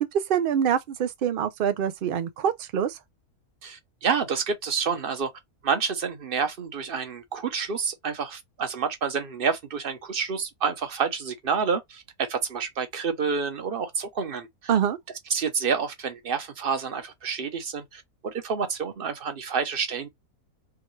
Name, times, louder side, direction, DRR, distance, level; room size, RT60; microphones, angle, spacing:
voice 1, 0.1-3.0 14.7-15.0, right 8 dB, 75° right, 0.5 m, -25 dB
voice 2, 3.6-5.3 5.6-14.8 15.3-20.1, right 6 dB, 45° right, 0.9 m, -28 dB
4.7 x 3.2 x 3.1 m
omnidirectional pair, 1.5 m